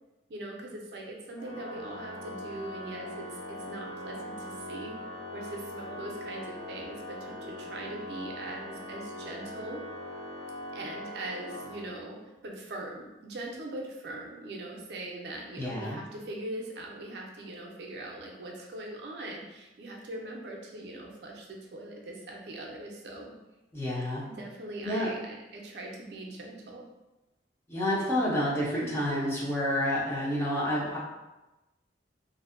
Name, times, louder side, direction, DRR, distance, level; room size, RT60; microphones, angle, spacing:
voice 1, 0.3-9.8 10.7-23.4 24.3-26.9, right 1 dB, 65° right, -1 dB, 0.4 m, -41 dB
Organ, 1.3-12.3, left 1 dB, 75° left, 0.5 m, -41 dB
voice 2, 15.6-16.0 23.7-24.2 24.8-25.1 27.7-31.0, left 1 dB, 15° left, -6 dB, 0.5 m, -29 dB
2.5 x 2.1 x 2.4 m, 1.0 s
head